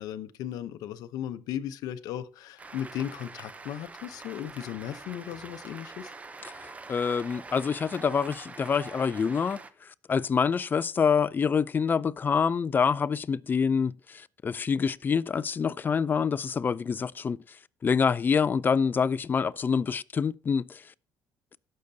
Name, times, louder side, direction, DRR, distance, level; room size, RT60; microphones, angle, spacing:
voice 1, 0.0-6.1, left 10 dB, 75° left, 0.7 m, -36 dB
Cheering / Applause, 2.6-9.7, right 3 dB, 20° right, 0.7 m, -45 dB
voice 2, 6.9-9.6 10.1-17.4 17.8-20.8, left 6 dB, 30° left, 0.4 m, -26 dB
17.0 x 6.6 x 2.7 m
cardioid pair, 105°, 7 cm